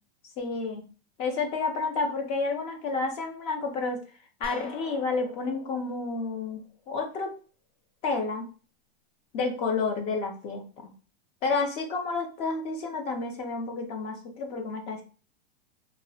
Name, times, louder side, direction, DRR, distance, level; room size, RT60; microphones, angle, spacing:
voice 1, 0.4-0.8 1.2-4.0 4.4-7.3 8.0-8.5 9.3-10.9 11.4-15.0, left 4 dB, 20° left, 3 dB, 0.3 m, -30 dB
sound 1, 4.4-7.2, left 3 dB, 55° left, 0.7 m, -46 dB
2.7 x 2.0 x 2.6 m, 0.37 s
supercardioid pair, 150°, 30 cm